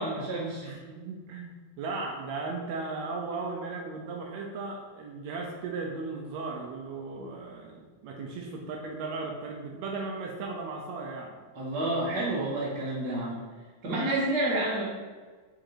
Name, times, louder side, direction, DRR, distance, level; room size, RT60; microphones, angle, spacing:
voice 1, 0.0-0.7 11.6-13.5 13.8-14.8, right 1 dB, 40° right, -6 dB, 2.0 m, -29 dB
voice 2, 0.6-11.4, right 3 dB, 75° right, 1 dB, 1.7 m, -36 dB
5.1 x 4.9 x 4.4 m, 1.4 s
omnidirectional pair, 3.5 m